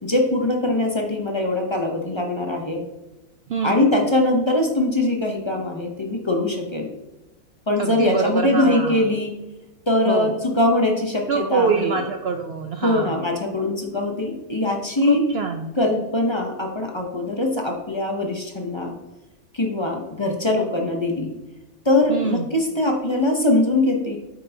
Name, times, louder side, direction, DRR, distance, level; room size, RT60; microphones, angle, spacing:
voice 1, 0.0-2.8 3.6-6.9 7.7-9.3 9.9-12.0 12.8-15.2 15.8-18.9 19.5-21.3 21.8-24.2, left 2 dB, 30° left, 1 dB, 0.6 m, -22 dB
voice 2, 3.5-3.9 7.8-9.0 10.1-10.3 11.3-13.2 15.1-15.7 22.1-22.5, right 5 dB, 75° right, 5 dB, 0.5 m, -25 dB
8.1 x 5.6 x 2.7 m, 1.1 s
omnidirectional pair, 1.6 m